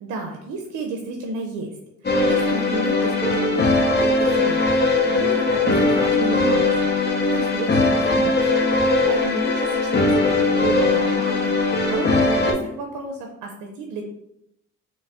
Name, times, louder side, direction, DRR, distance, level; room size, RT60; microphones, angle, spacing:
voice 1, 0.0-1.7 2.0-6.9 7.2-11.6 11.9-14.0, right 3 dB, 90° right, 2 dB, 0.6 m, -32 dB
sound 1, 2.0-12.5, left 3 dB, 35° left, 0.9 m, -20 dB
3.9 x 3.0 x 3.4 m, 0.79 s
cardioid pair, 90°, 30 cm